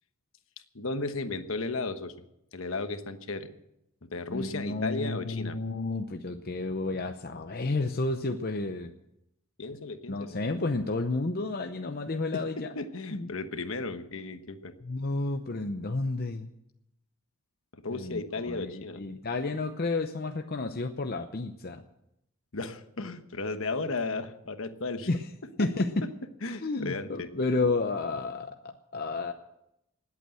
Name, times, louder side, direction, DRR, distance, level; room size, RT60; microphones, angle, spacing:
voice 1, 0.7-2.1 2.5-3.5 4.0-5.5 9.6-10.4 12.3-12.4 12.7-14.7 17.7-19.0 22.5-25.1 26.4-27.3, left 3 dB, 65° left, 9 dB, 1.2 m, -34 dB
voice 2, 4.3-8.9 10.1-12.7 13.1-13.3 14.8-16.5 17.9-21.8 25.1-25.3 25.6-26.1 26.4-29.3, left 3 dB, 45° left, 5 dB, 0.7 m, -31 dB
20.0 x 8.4 x 7.7 m, 0.83 s
head